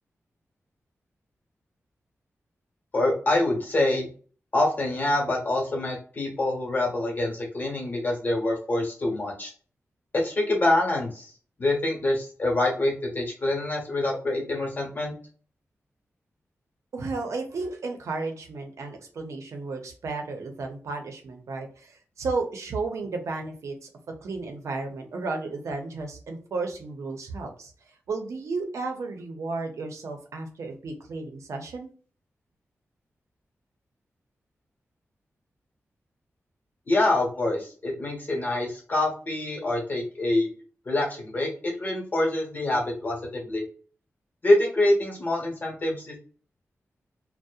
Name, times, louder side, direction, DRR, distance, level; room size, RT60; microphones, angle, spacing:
voice 1, 2.9-4.1 4.5-9.5 10.1-11.3 11.6-15.1 36.9-40.5 40.8-41.5 41.8-43.2 43.4-43.6 44.4-46.2, left 2 dB, 35° left, -2 dB, 1.0 m, -25 dB
voice 2, 16.9-27.7 28.1-31.9, right 3 dB, 80° right, 4 dB, 0.6 m, -33 dB
2.7 x 2.1 x 2.3 m, 0.41 s
wide cardioid pair, 165°, 5 cm